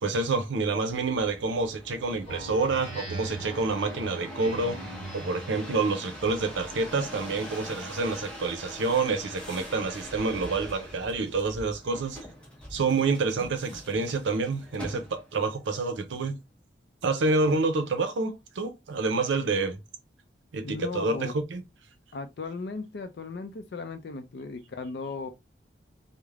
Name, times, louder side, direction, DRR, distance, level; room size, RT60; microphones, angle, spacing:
voice 1, 0.0-4.8 5.1-12.2 12.7-16.3 17.0-19.8 20.5-21.6, right 3 dB, 80° right, 0.5 m, -28 dB
sound 1, 0.9-15.4 16.0-16.6, left 1 dB, 5° left, 0.7 m, -43 dB
Speech synthesizer, 2.2-5.6, right 2 dB, 35° left, 1.4 m, -40 dB
voice 2, 20.6-21.3 22.1-25.3, left 4 dB, 65° left, 0.4 m, -36 dB
3.2 x 2.0 x 2.3 m
head